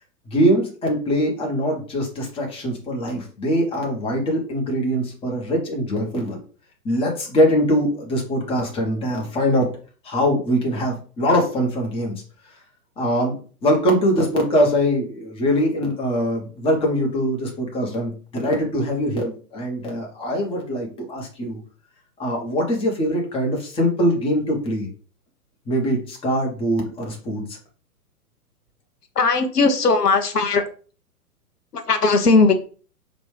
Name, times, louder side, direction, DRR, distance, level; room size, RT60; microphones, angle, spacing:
voice 1, 0.3-6.4 6.8-9.7 10.0-12.1 13.0-13.4 13.6-21.6 22.2-24.9 25.7-27.6, equal, 10° left, -1 dB, 1.3 m, -22 dB
voice 2, 29.1-30.6 31.7-32.5, left 3 dB, 75° left, 7 dB, 0.9 m, -18 dB
5.1 x 3.0 x 3.3 m, 0.39 s
figure-of-eight pair, 120°, 47 cm